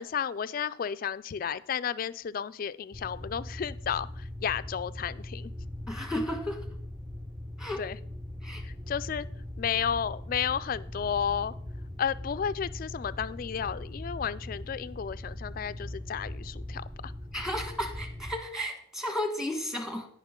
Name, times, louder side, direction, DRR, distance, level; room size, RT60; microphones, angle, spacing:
voice 1, 0.0-5.5 7.8-8.0 8.6-9.3 9.6-11.5 12.0-17.1, left 7 dB, 45° left, 15 dB, 0.3 m, -32 dB
sound 1, 2.9-18.3, left 1 dB, 25° right, 0.9 m, -40 dB
voice 2, 5.9-6.6 7.6-7.8 8.4-8.6 17.3-20.1, left 1 dB, 5° right, 5 dB, 1.4 m, -33 dB
16.5 x 5.6 x 3.7 m, 0.63 s
head